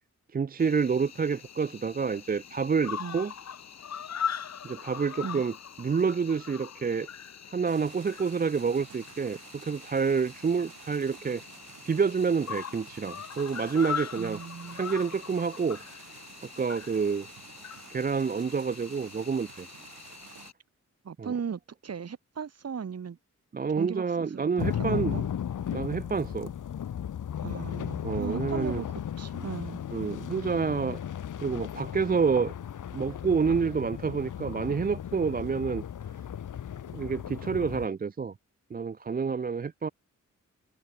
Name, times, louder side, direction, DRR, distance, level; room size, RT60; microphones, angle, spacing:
voice 1, 0.3-3.3 4.6-5.5 5.8-7.1 7.5-11.4 11.8-14.4 14.7-15.8 16.4-17.3 17.9-19.7 21.2-21.3 23.5-25.1 25.7-26.5 28.0-28.8 29.9-31.0 31.4-32.5 32.9-35.8 36.9-38.3 38.7-39.9, right 5 dB, 30° right, 0.5 m, -28 dB
Cricket, 0.6-20.5, left 8 dB, 60° left, 1.6 m, -41 dB
sound 1, 7.6-20.5, right 9 dB, 85° right, 1.3 m, -52 dB
voice 2, 14.2-14.9 21.0-23.2 23.8-25.3 27.4-28.9 29.2-29.8, right 7 dB, 55° right, 2.7 m, -37 dB
sound 2, 24.6-37.9, left 9 dB, 75° left, 1.3 m, -35 dB
wide cardioid pair, 165°, 31 cm